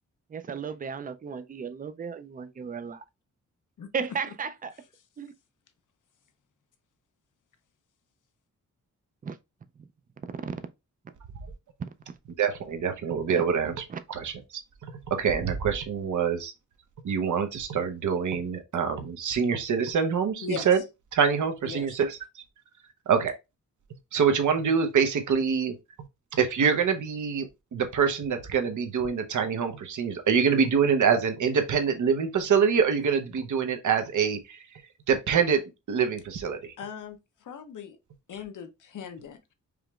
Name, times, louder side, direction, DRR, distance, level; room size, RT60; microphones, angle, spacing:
voice 1, 0.3-3.0 3.9-4.7 5.2-5.3 9.2-9.4 9.8-9.9 10.3-10.6 11.8-11.9 13.3-13.4 13.9-14.0, right 6 dB, 30° right, 0.3 m, -35 dB
voice 2, 12.4-14.3 14.8-16.5 17.0-20.8 21.1-22.4 23.1-23.3 24.1-25.7 26.3-27.5 27.7-34.6 35.1-35.6 35.9-36.7, right 6 dB, 70° right, 0.8 m, -25 dB
voice 3, 21.6-22.0 36.8-38.0 38.3-39.5, left 7 dB, 80° left, 0.7 m, -39 dB
4.9 x 3.0 x 2.3 m
wide cardioid pair, 150°, 31 cm